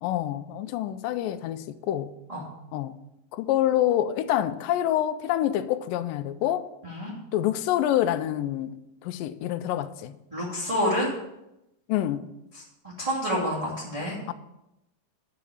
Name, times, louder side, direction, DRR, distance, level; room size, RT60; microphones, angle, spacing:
voice 1, 0.0-2.1 2.7-3.0 3.3-6.7 7.3-10.2 11.9-12.3 14.3-14.4, left 12 dB, 80° left, 2.2 m, -27 dB
voice 2, 10.3-11.1 13.0-14.2, equal, 10° right, 2.1 m, -28 dB
11.5 x 5.0 x 7.0 m
omnidirectional pair, 4.1 m